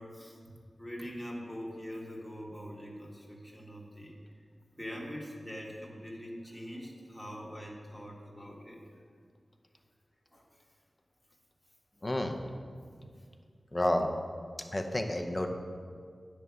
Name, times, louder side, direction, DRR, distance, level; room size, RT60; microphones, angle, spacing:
voice 1, 0.0-4.4 4.8-8.8 10.3-10.6 13.0-13.2, equal, 5° left, -3 dB, 1.5 m, -44 dB
voice 2, 12.0-12.4 13.7-14.1 14.7-15.5, left 1 dB, 25° left, 4 dB, 0.7 m, -30 dB
9.8 x 3.5 x 6.2 m, 2.1 s
wide cardioid pair, 70°, 0 cm